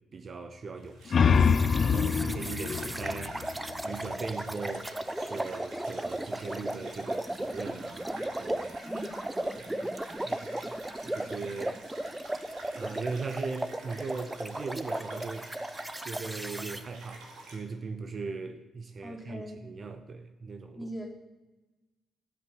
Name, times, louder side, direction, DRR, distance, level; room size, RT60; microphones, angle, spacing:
voice 1, 0.1-4.9 5.2-8.7 9.1-9.9 10.2-11.8 12.8-15.5 16.0-20.9, right 4 dB, 45° right, 0.9 m, -39 dB
sound 1, 0.8-4.3, left 6 dB, 50° left, 0.5 m, -26 dB
sound 2, 0.8-17.6, right 2 dB, 65° right, 2.4 m, -49 dB
sound 3, 1.4-16.8, right 1 dB, 10° right, 0.7 m, -36 dB
voice 2, 8.8-9.2 19.0-19.6 20.7-21.1, equal, 15° left, 3.2 m, -40 dB
12.5 x 6.0 x 8.1 m
hypercardioid pair, 45°, 0 cm